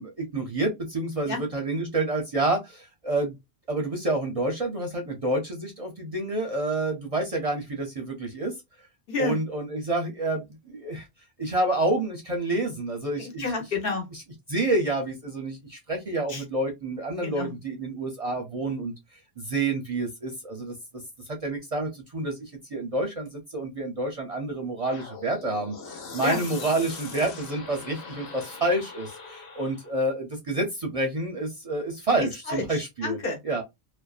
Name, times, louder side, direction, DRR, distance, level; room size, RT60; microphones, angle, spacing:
voice 1, 0.0-3.4 3.7-8.6 9.2-11.1 11.4-13.4 14.5-18.9 19.4-20.7 21.3-33.2 33.4-33.6, right 2 dB, 45° right, 0.5 m, -28 dB
voice 2, 13.2-14.1 16.3-16.4 17.2-17.5 26.2-26.4 32.5-33.4, left 3 dB, 60° left, 1.0 m, -29 dB
sound 1, 24.9-29.9, left 4 dB, 85° left, 1.0 m, -41 dB
2.5 x 2.1 x 2.3 m
omnidirectional pair, 1.1 m